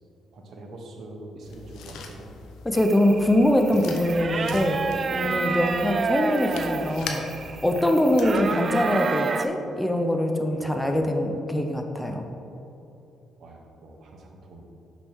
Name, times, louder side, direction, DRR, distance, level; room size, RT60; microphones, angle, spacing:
voice 1, 0.3-2.4 3.7-3.9 5.2-5.6 10.5-10.9 13.4-14.6, right 2 dB, 65° right, 1 dB, 1.1 m, -44 dB
sound 1, 1.4-8.5, left 4 dB, 85° left, 0.7 m, -42 dB
voice 2, 2.6-4.8 5.1-7.2 7.6-12.2, left 1 dB, 10° left, 4 dB, 0.6 m, -23 dB
sound 2, 2.8-9.5, right 5 dB, 45° right, 0.3 m, -30 dB
6.0 x 6.0 x 3.6 m, 2.9 s
cardioid pair, 90°, 0 cm